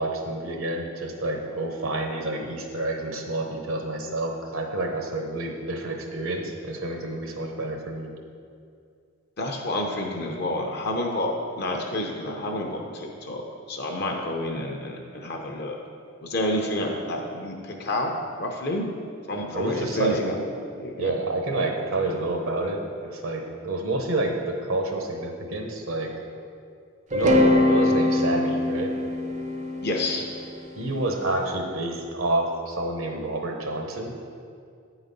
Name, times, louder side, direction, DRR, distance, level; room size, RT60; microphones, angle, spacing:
voice 1, 0.0-8.1 19.5-20.2 21.0-26.1 27.1-28.9 30.8-34.1, right 2 dB, 70° right, 3 dB, 0.9 m, -28 dB
voice 2, 9.4-11.3 11.6-13.4 13.7-15.8 16.2-18.8 19.3-20.3 20.8-21.1 29.8-30.3, left 1 dB, 50° left, 1 dB, 0.7 m, -29 dB
sound 1, 27.1-31.3, left 1 dB, 35° right, 0.5 m, -23 dB
8.8 x 4.0 x 5.3 m, 2.3 s
head